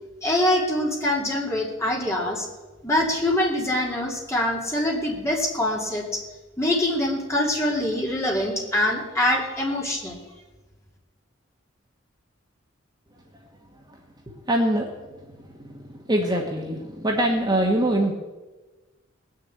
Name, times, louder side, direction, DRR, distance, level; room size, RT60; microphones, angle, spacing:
voice 1, 0.2-2.5 2.8-6.2 6.6-10.2, left 1 dB, 15° left, -2 dB, 2.7 m, -24 dB
voice 2, 14.5-14.9 15.4-18.1, right 1 dB, 20° right, 0 dB, 1.3 m, -24 dB
18.0 x 6.7 x 8.6 m, 1.2 s
head